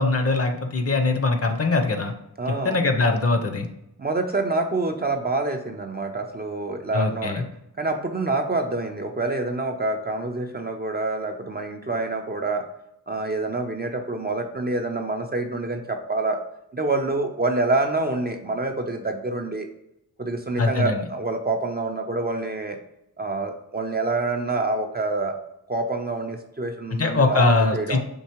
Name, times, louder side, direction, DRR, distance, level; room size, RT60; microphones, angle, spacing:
voice 1, 0.0-2.1 2.6-3.7 6.9-7.4 20.6-21.0 27.0-28.0, left 3 dB, 40° left, 6 dB, 0.7 m, -22 dB
voice 2, 2.4-2.8 4.0-7.4 7.8-12.6 13.1-16.4 16.7-19.7 20.2-22.8 23.2-25.3 25.7-28.0, right 2 dB, 25° right, 3 dB, 0.5 m, -27 dB
4.5 x 2.7 x 2.9 m, 0.81 s
cardioid pair, 50°, 39 cm